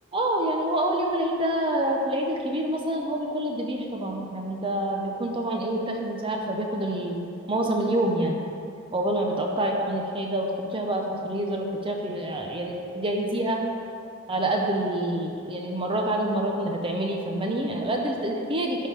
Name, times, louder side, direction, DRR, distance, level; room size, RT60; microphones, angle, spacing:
voice 1, 0.1-7.2 7.5-8.3 8.9-13.6 14.3-18.9, right 1 dB, 25° right, 1 dB, 0.7 m, -27 dB
11.0 x 3.7 x 5.8 m, 2.5 s
head